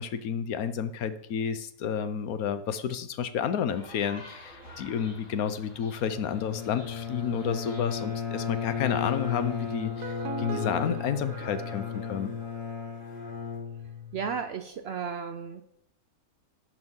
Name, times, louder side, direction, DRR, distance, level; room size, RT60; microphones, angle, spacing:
voice 1, 0.0-12.3, left 8 dB, 80° left, 11 dB, 1.2 m, -31 dB
sound 1, 3.7-11.2, left 1 dB, 60° left, 3.2 m, -51 dB
Bowed string instrument, 5.9-14.4, left 7 dB, 45° left, 2.2 m, -35 dB
sound 2, 9.8-12.9, right 5 dB, 85° right, 1.4 m, -40 dB
voice 2, 14.1-15.6, right 6 dB, 65° right, 9 dB, 0.6 m, -34 dB
10.5 x 6.3 x 3.7 m, 0.77 s
omnidirectional pair, 1.5 m